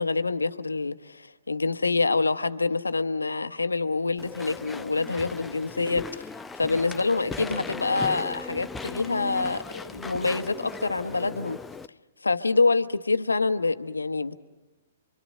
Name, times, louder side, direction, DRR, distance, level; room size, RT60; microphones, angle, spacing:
voice 1, 0.0-6.3 6.6-11.6 12.2-14.4, left 3 dB, 80° left, 10 dB, 1.2 m, -26 dB
Walk footsteps / Chatter / Squeak, 4.2-11.9, left 4 dB, 10° left, 0.7 m, -38 dB
28.5 x 24.5 x 6.6 m, 1.1 s
figure-of-eight pair, 115°, 0 cm